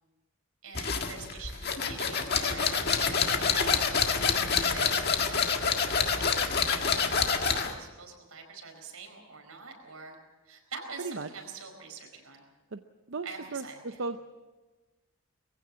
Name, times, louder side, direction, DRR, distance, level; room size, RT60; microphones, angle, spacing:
voice 1, 0.6-3.8 4.6-6.3 7.0-10.2 10.5-12.4 13.2-14.0, right 5 dB, 85° right, 3 dB, 4.8 m, -45 dB
sound 1, 0.7-7.8, left 6 dB, 45° left, 1.7 m, -27 dB
voice 2, 11.0-11.3 12.7-12.8 13.1-13.6 14.0-14.2, right 4 dB, 60° right, 7 dB, 0.7 m, -35 dB
22.0 x 15.5 x 7.6 m, 1.2 s
head